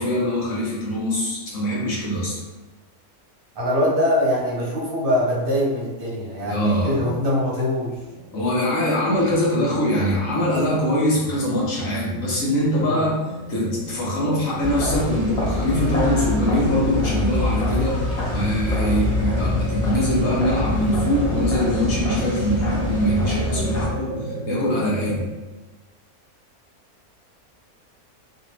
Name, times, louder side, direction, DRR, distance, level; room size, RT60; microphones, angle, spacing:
voice 1, 0.0-2.4 6.5-7.0 8.3-13.1 13.5-18.0 18.3-25.3, equal, 65° left, -5 dB, 1.3 m, -23 dB
voice 2, 3.5-8.0 12.8-13.0 18.8-19.0, left 1 dB, 40° right, -7 dB, 1.0 m, -23 dB
sound 1, 8.1-25.3, right 2 dB, 80° right, 1.3 m, -34 dB
sound 2, 14.6-23.9, left 2 dB, 85° left, 0.3 m, -25 dB
3.1 x 2.6 x 2.9 m, 1.2 s
omnidirectional pair, 1.6 m